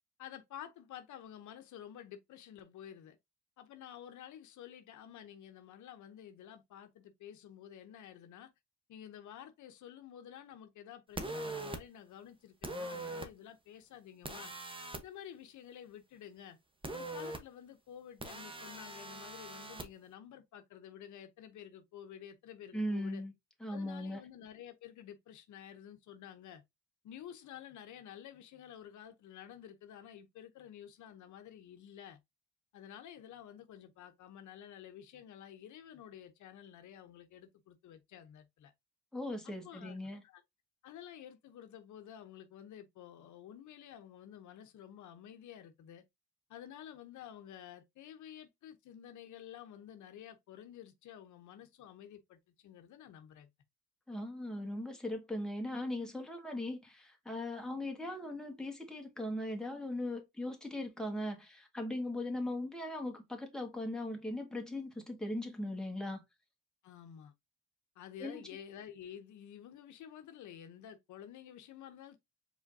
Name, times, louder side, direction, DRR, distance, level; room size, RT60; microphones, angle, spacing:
voice 1, 0.2-3.2 3.6-8.5 8.9-14.5 15.0-16.6 16.9-23.2 23.7-26.6 27.0-32.2 32.7-38.7 39.4-40.4 40.8-46.0 46.5-53.5 66.8-67.3 68.0-72.2, left 10 dB, 75° left, 0.8 m, -51 dB
sound 1, 11.2-11.8 12.6-13.3 14.2-15.0 16.8-17.4 18.2-19.9, right 2 dB, 15° right, 1.0 m, -41 dB
voice 2, 22.7-23.3 23.6-24.2 39.1-40.2 54.1-66.2 68.2-68.4, left 1 dB, ahead, 1.7 m, -39 dB
4.9 x 3.8 x 2.7 m
cardioid pair, 90°, 30 cm